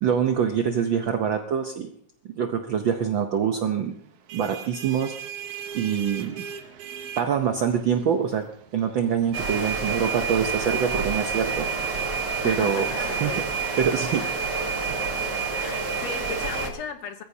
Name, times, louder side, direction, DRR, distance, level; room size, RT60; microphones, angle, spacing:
voice 1, 0.0-1.9 2.4-4.0 4.3-5.1 5.7-6.3 7.2-8.4 8.7-11.7 12.4-13.3 13.8-14.2, right 7 dB, 85° right, 5 dB, 1.0 m, -25 dB
sound 1, 4.0-15.4, right 7 dB, 65° right, 1.7 m, -43 dB
sound 2, 9.3-16.7, right 5 dB, 45° right, 1.7 m, -28 dB
voice 2, 12.4-13.5 14.2-14.3 15.6-17.2, left 7 dB, 70° left, 8 dB, 1.9 m, -36 dB
21.5 x 14.5 x 2.8 m, 0.65 s
omnidirectional pair, 3.3 m